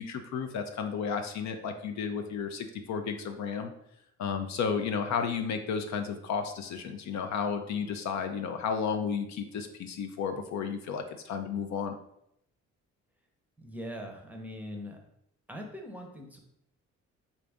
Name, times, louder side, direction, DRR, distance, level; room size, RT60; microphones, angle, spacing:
voice 1, 0.0-3.7 4.2-11.9, left 6 dB, 65° left, 7 dB, 0.5 m, -33 dB
voice 2, 13.6-15.0 15.5-16.4, equal, 5° right, 1 dB, 0.7 m, -41 dB
3.9 x 2.5 x 3.4 m, 0.75 s
cardioid pair, 90°, 30 cm